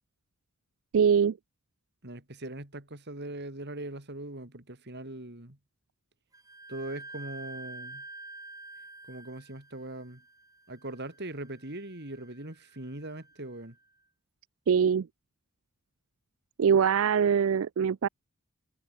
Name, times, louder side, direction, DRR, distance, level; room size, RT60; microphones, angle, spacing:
voice 1, 0.9-1.4 14.7-15.1 16.6-18.1, right 7 dB, 65° right, 0.4 m, -23 dB
voice 2, 2.0-5.6 6.7-8.0 9.1-10.2 10.7-13.8, right 1 dB, 50° right, 3.2 m, -40 dB
Wind instrument woodwind instrument, 6.3-13.8, right 2 dB, 15° right, 5.2 m, -48 dB
head